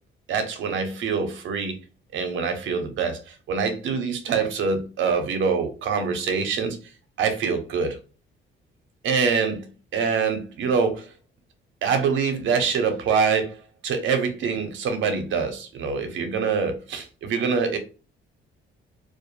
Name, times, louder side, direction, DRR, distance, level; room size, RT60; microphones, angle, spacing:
voice 1, 0.3-1.8 2.1-6.8 7.2-8.0 9.0-9.7 9.9-11.1 11.8-17.8, right 5 dB, 75° right, 0.6 m, -25 dB
2.3 x 2.1 x 3.0 m
cardioid pair, 90°, 20 cm